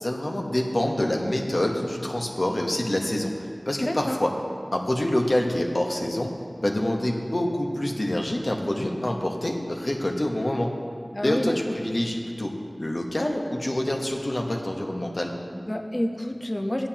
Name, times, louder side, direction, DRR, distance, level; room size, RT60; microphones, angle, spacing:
voice 1, 0.0-3.3 3.7-4.3 4.7-6.3 6.6-10.7 11.2-15.3, left 1 dB, 50° left, 1 dB, 1.1 m, -26 dB
voice 2, 3.8-4.2 11.1-11.8 15.5-16.9, left 1 dB, 30° left, 4 dB, 0.8 m, -29 dB
15.0 x 9.5 x 2.9 m, 2.3 s
wide cardioid pair, 50°, 0 cm